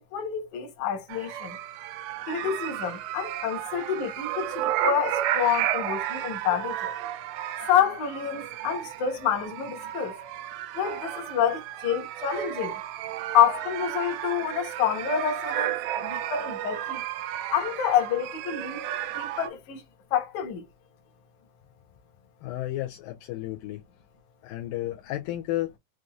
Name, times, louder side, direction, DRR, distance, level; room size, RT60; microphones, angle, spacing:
voice 1, 0.1-1.6 2.3-6.9 7.6-10.2 10.8-12.8 13.3-17.0 17.5-18.8 19.1-19.8 20.1-20.7, left 9 dB, 65° left, 2.3 m, -27 dB
sound 1, 1.1-19.5, right 12 dB, 90° right, 2.5 m, -33 dB
voice 2, 22.4-23.8 24.4-25.7, left 15 dB, 85° left, 2.3 m, -32 dB
6.2 x 2.6 x 2.3 m
omnidirectional pair, 4.2 m